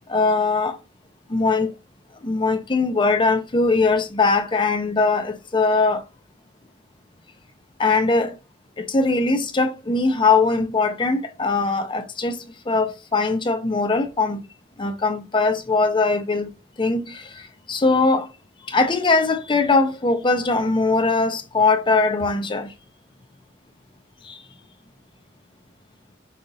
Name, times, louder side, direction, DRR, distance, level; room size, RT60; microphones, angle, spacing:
voice 1, 0.1-0.8 1.3-1.7 2.2-6.0 7.8-8.4 8.8-12.4 12.7-14.4 14.8-16.5 16.8-18.3 18.7-22.7 24.2-24.4, left 3 dB, 25° left, 0.6 m, -21 dB
5.6 x 2.5 x 3.8 m
head